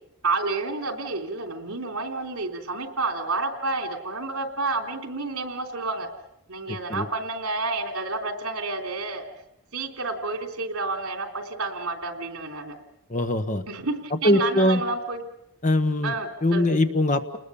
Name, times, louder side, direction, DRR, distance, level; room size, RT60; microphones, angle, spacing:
voice 1, 0.2-6.1 6.5-9.3 9.7-12.7 13.7-15.2 16.0-16.7, right 3 dB, 75° right, 5 dB, 3.3 m, -30 dB
voice 2, 13.1-13.6 14.2-14.8 15.6-16.1 16.4-17.4, left 1 dB, 35° left, 9 dB, 1.1 m, -21 dB
30.0 x 20.5 x 7.0 m, 0.78 s
head